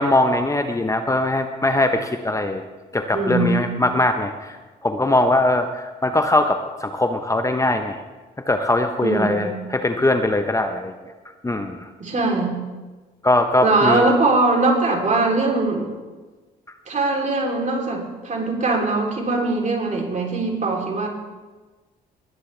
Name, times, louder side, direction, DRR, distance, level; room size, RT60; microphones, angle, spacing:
voice 1, 0.0-2.6 2.9-4.6 4.8-8.0 8.5-10.9 11.4-11.9 13.2-14.1, left 2 dB, 15° left, 6 dB, 0.9 m, -21 dB
voice 2, 3.1-3.7 9.0-9.5 12.0-12.6 13.6-15.9 16.9-21.1, right 3 dB, 40° right, 0 dB, 3.3 m, -21 dB
19.5 x 9.8 x 3.3 m, 1.3 s
supercardioid pair, 70°, 19 cm